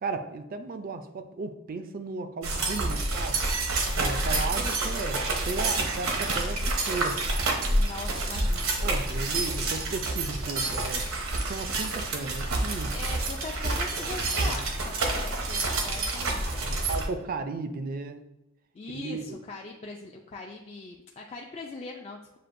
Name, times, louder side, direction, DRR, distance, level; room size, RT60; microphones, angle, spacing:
voice 1, 0.0-3.4 4.0-7.2 8.8-11.1 11.4-12.9 14.4-14.6 16.6-18.2 18.9-19.4, right 3 dB, 45° right, 9 dB, 0.4 m, -35 dB
sound 1, 2.4-17.1, right 2 dB, 80° right, 0.8 m, -28 dB
voice 2, 7.7-8.8 12.9-16.9 18.7-22.4, left 3 dB, 30° left, 0 dB, 0.3 m, -41 dB
7.4 x 2.5 x 2.5 m, 0.96 s
head